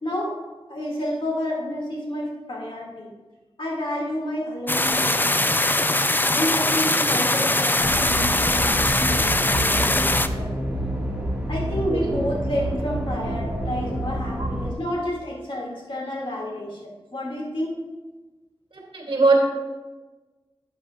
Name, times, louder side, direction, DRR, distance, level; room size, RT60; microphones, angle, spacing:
voice 1, 0.0-0.3 0.7-3.1 3.6-5.3 6.3-10.6 11.5-17.8, left 1 dB, 55° left, -2 dB, 2.4 m, -30 dB
sound 1, 4.7-10.3, left 2 dB, 20° left, 0.4 m, -21 dB
sound 2, 7.8-14.7, right 1 dB, 10° right, 1.9 m, -28 dB
voice 2, 18.9-19.5, right 3 dB, 60° right, -2 dB, 2.5 m, -21 dB
11.5 x 8.5 x 2.5 m, 1.2 s
wide cardioid pair, 55°, 10 cm